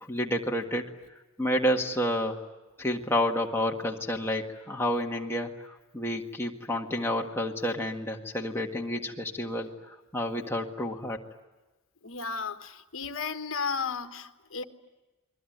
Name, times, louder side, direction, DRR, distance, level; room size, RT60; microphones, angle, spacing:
voice 1, 0.0-0.8 1.4-2.4 2.8-11.2, equal, 10° left, 1 dB, 1.7 m, -30 dB
voice 2, 12.0-14.6, left 5 dB, 60° left, 8 dB, 1.4 m, -34 dB
29.0 x 22.0 x 9.3 m, 1.2 s
head